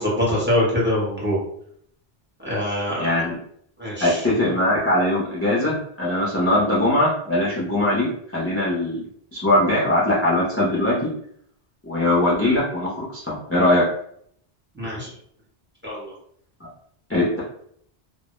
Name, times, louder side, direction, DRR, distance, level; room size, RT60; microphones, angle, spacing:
voice 1, 0.0-1.4 2.4-3.1 3.8-4.2 14.8-15.1 15.8-16.1, left 1 dB, 10° right, -6 dB, 0.7 m, -24 dB
voice 2, 3.0-3.4 4.0-9.0 9.3-11.1 11.8-13.8 17.1-17.4, left 1 dB, 20° left, -6 dB, 0.4 m, -21 dB
2.1 x 2.0 x 2.9 m, 0.66 s
omnidirectional pair, 1.1 m